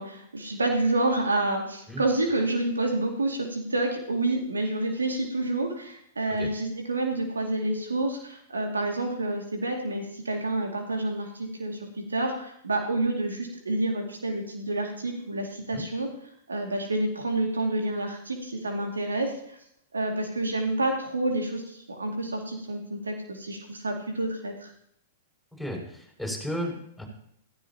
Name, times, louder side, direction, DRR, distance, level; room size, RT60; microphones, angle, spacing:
voice 1, 0.0-16.1 16.5-19.3 19.9-24.7, right 2 dB, 85° right, 2 dB, 2.4 m, -28 dB
voice 2, 25.5-27.0, equal, ahead, -2 dB, 6.0 m, -34 dB
15.5 x 15.5 x 3.0 m, 0.70 s
figure-of-eight pair, 105°, 0 cm